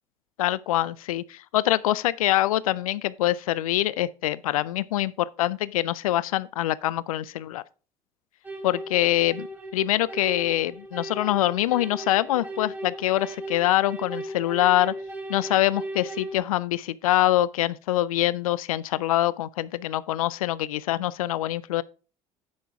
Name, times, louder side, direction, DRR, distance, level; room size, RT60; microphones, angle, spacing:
voice 1, 0.4-7.6 8.6-9.5 9.7-14.9 15.3-21.8, left 14 dB, 80° left, 0.4 m, -24 dB
sound 1, 8.4-16.4, right 1 dB, 10° right, 3.5 m, -37 dB
8.4 x 6.1 x 4.5 m
hypercardioid pair, 60°, 18 cm